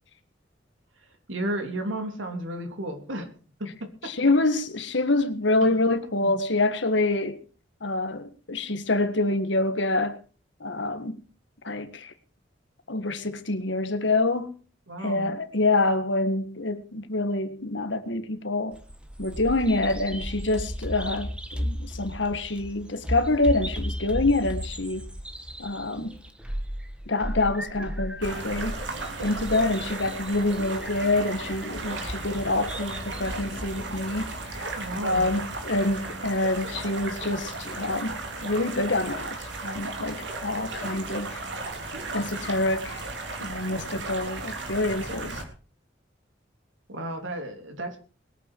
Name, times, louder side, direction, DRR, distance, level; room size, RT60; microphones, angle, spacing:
voice 1, 1.3-3.3 3.6-4.1 6.2-6.3 14.9-15.3 34.8-35.3 46.9-48.0, right 1 dB, 90° right, 3.5 m, -33 dB
voice 2, 4.0-7.4 7.8-10.2 10.6-11.2 11.6-12.1 12.9-14.5 15.0-18.8 19.2-25.1 25.6-26.1 27.1-28.8 29.2-34.7 35.0-41.4 42.1-43.0 43.4-45.4, left 2 dB, 70° left, 1.7 m, -26 dB
Bird vocalization bird call bird song, 18.7-36.8, equal, 5° right, 1.5 m, -36 dB
sound 1, 28.2-45.4, right 3 dB, 65° right, 3.4 m, -35 dB
21.0 x 9.2 x 4.7 m
head